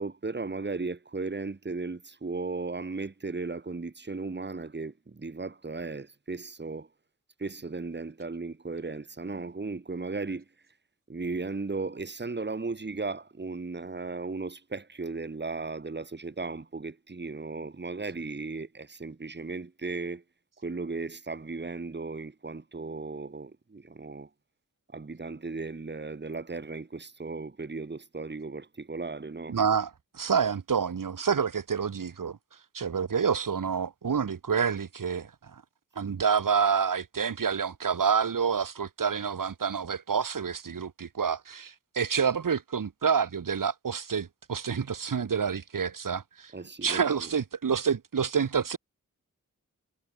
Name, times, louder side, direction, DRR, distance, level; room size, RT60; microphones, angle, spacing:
voice 1, 0.0-6.9 7.4-10.4 11.1-20.2 20.6-24.3 24.9-29.6 46.5-47.3, right 3 dB, 35° right, 3.1 m, -36 dB
voice 2, 29.5-32.4 32.7-35.6 36.0-46.5 46.8-48.8, right 6 dB, 85° right, 4.3 m, -28 dB
wide cardioid pair, 105°, 32 cm